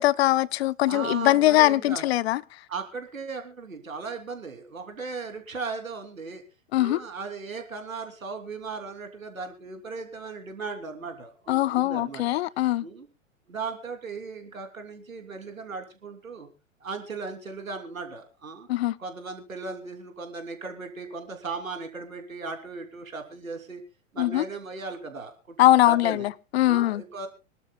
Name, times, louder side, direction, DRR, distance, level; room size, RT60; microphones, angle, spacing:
voice 1, 0.0-2.4 6.7-7.0 11.5-12.8 18.7-19.0 24.2-24.4 25.6-27.0, left 15 dB, 50° left, 0.6 m, -21 dB
voice 2, 0.8-2.0 2.7-6.4 6.8-12.4 12.8-13.1 13.5-16.5 16.8-18.7 19.0-23.8 24.1-26.3 26.7-27.3, right 4 dB, 85° right, 3.2 m, -37 dB
26.0 x 12.0 x 2.3 m
figure-of-eight pair, 105°, 40 cm